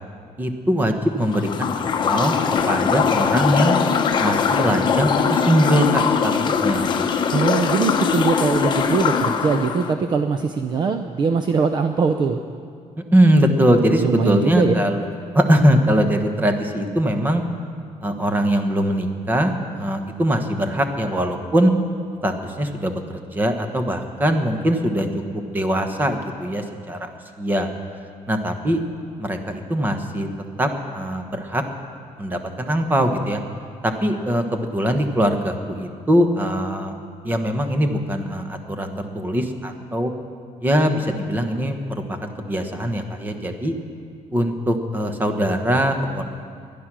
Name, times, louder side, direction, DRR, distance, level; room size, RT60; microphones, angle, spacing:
voice 1, 0.4-2.3 2.7-3.8 4.2-6.3 6.6-6.9 13.1-15.0 15.3-17.4 18.0-21.7 22.2-23.0 23.3-25.1 25.3-27.1 27.4-27.7 28.3-28.8 29.2-30.3 30.6-31.6 32.2-33.4 33.8-37.0 37.2-40.1 40.6-43.7 44.3-46.2, equal, 15° right, 6 dB, 1.1 m, -21 dB
sound 1, 1.3-9.9, left 6 dB, 35° left, 0.9 m, -21 dB
voice 2, 7.3-12.4 14.0-14.7, right 5 dB, 35° right, 7 dB, 0.6 m, -21 dB
21.5 x 10.5 x 6.1 m, 2.2 s
cardioid pair, 165°, 13 cm